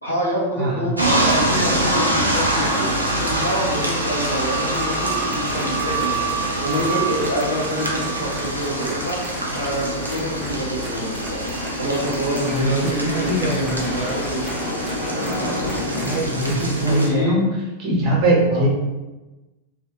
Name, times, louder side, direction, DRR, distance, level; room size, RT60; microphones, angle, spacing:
voice 1, 0.0-2.9 3.2-6.3 6.6-9.2 9.5-11.4 11.8-14.8 16.8-17.4 18.5-18.7, equal, 85° left, -5 dB, 0.6 m, -27 dB
voice 2, 0.6-1.0 12.5-13.9 16.0-17.4 17.8-18.7, right 1 dB, 35° right, -3 dB, 0.8 m, -21 dB
sound 1, 1.0-17.1, right 1 dB, 85° right, 0.4 m, -24 dB
sound 2, 4.7-8.1 8.4-10.5 10.8-12.9 13.2-14.5 14.9-15.0 15.3-15.4 15.7-16.2 16.4-16.7, right 1 dB, 5° right, 0.5 m, -36 dB
sound 3, 8.3-17.3, left 1 dB, 60° left, 0.9 m, -33 dB
2.6 x 2.4 x 2.3 m, 1.1 s
figure-of-eight pair, 90°, 0 cm